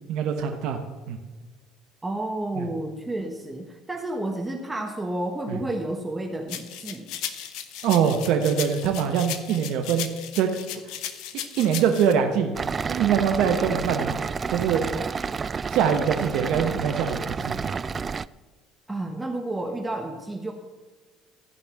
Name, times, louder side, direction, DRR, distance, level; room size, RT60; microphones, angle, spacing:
voice 1, 0.1-0.8 1.1-1.2 2.6-2.7 5.5-5.6 7.8-10.1 10.3-10.5 11.6-12.5 12.9-14.2 14.5-14.8 15.7-17.8, right 8 dB, 70° right, 5 dB, 1.1 m, -23 dB
voice 2, 2.0-7.1 18.9-20.5, right 1 dB, 15° right, 3 dB, 1.5 m, -31 dB
sound 1, 6.5-12.1, left 10 dB, 70° left, 1.0 m, -36 dB
sound 2, 12.5-18.3, right 5 dB, 35° right, 0.4 m, -30 dB
14.5 x 5.3 x 7.3 m, 1.3 s
hypercardioid pair, 65°, 0 cm